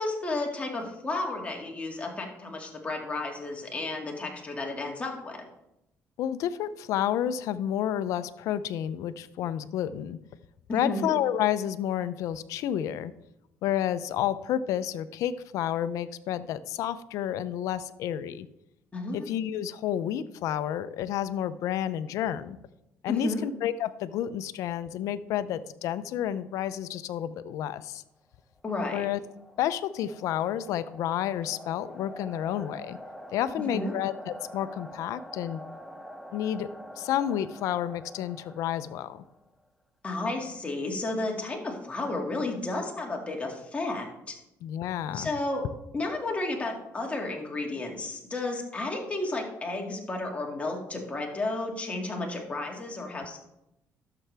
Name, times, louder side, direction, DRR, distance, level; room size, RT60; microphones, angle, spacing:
voice 1, 0.0-5.4 10.7-11.1 18.9-19.2 23.1-23.4 28.6-29.1 33.6-34.0 40.0-44.4 45.1-45.7 45.9-53.4, left 2 dB, 25° left, 0 dB, 2.2 m, -32 dB
voice 2, 6.2-10.2 10.7-13.1 13.6-18.5 19.1-22.6 23.0-28.0 28.9-29.2 29.6-33.0 33.3-35.6 36.3-36.7 37.0-39.2 44.6-45.3, left 11 dB, 75° left, 14 dB, 0.5 m, -30 dB
sound 1, 28.7-39.5, equal, ahead, 0.8 m, -46 dB
12.0 x 6.8 x 3.4 m, 0.85 s
cardioid pair, 100°, 6 cm